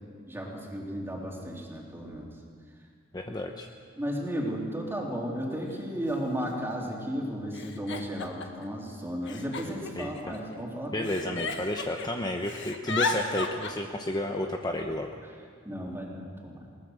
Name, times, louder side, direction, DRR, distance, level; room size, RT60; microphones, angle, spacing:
voice 1, 0.3-2.3 4.0-11.4 15.6-16.7, equal, 10° right, -2 dB, 3.5 m, -34 dB
voice 2, 3.1-3.7 10.0-10.3 10.9-15.1, left 1 dB, 20° left, 3 dB, 0.9 m, -31 dB
Giggle, 4.9-5.0 6.0-6.1 6.4-6.9 7.5-8.6 9.3-10.6 11.0-12.1 12.4-13.7, left 4 dB, 60° left, 1.6 m, -34 dB
21.5 x 19.0 x 6.5 m, 2.1 s
head